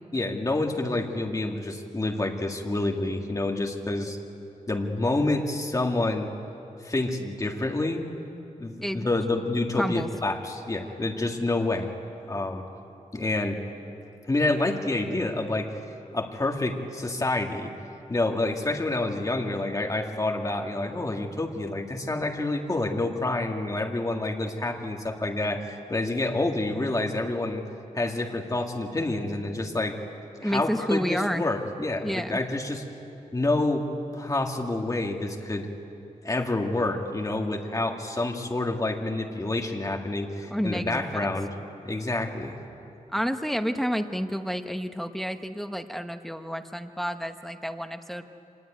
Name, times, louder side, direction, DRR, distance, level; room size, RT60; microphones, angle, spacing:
voice 1, 0.1-4.2 4.7-6.3 6.8-8.0 8.6-11.9 12.3-12.6 13.1-13.6 14.3-15.7 16.1-17.7 18.1-27.6 27.9-30.0 30.4-32.8 33.3-33.8 34.1-35.7 36.2-41.5 41.8-42.6, left 2 dB, 25° left, 2 dB, 2.1 m, -28 dB
voice 2, 9.8-10.1 30.4-31.4 32.0-32.4 40.5-41.3 43.1-48.2, equal, ahead, 7 dB, 1.0 m, -30 dB
25.5 x 20.5 x 9.3 m, 2.8 s
wide cardioid pair, 135°, 14 cm